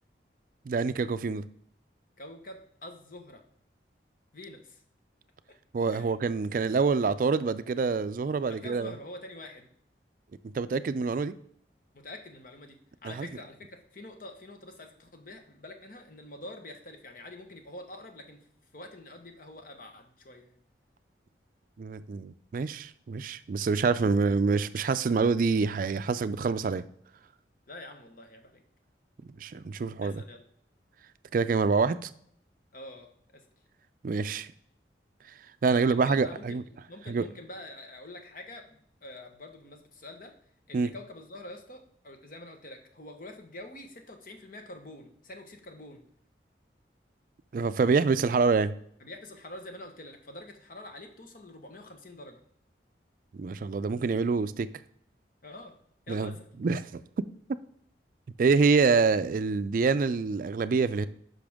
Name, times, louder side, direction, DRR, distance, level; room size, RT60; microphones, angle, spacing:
voice 1, 0.7-1.4 5.7-8.9 10.4-11.3 13.0-13.3 21.8-26.8 29.4-30.2 31.3-32.1 34.0-34.5 35.6-36.6 37.1-37.3 40.7-40.9 47.5-48.7 53.4-54.7 56.1-56.3 56.6-57.0 58.4-61.1, right 4 dB, 50° right, 14 dB, 0.3 m, -26 dB
voice 2, 2.2-3.4 4.3-4.8 5.9-6.1 8.5-9.7 11.9-12.8 13.0-18.4 18.7-20.5 27.7-28.6 30.0-30.4 32.7-33.4 35.7-40.3 40.7-46.0 49.0-52.4 55.4-55.7 56.1-56.5, left 1 dB, 50° left, 5 dB, 1.2 m, -46 dB
10.0 x 5.9 x 3.6 m, 0.67 s
head